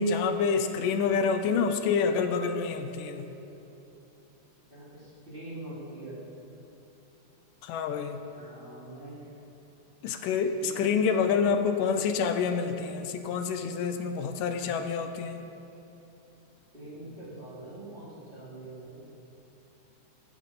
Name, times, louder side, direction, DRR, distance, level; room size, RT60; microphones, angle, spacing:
voice 1, 0.0-3.2 7.6-8.2 10.0-15.4, left 5 dB, 85° left, 8 dB, 2.4 m, -27 dB
voice 2, 4.7-6.2 8.3-9.1 10.6-10.7 16.7-19.0, right 1 dB, 15° right, -8 dB, 3.8 m, -44 dB
18.0 x 14.0 x 5.7 m, 3.0 s
omnidirectional pair, 3.7 m